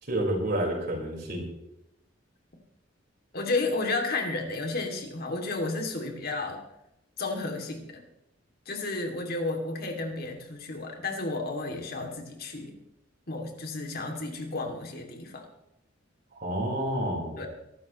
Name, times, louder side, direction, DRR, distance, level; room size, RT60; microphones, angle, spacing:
voice 1, 0.1-1.5 16.4-17.4, right 1 dB, 55° right, 0 dB, 4.8 m, -29 dB
voice 2, 3.3-6.6 7.2-8.0 8.7-12.7 13.3-15.5 17.4-17.5, left 3 dB, 55° left, 3 dB, 2.6 m, -32 dB
23.5 x 12.5 x 3.1 m, 0.84 s
head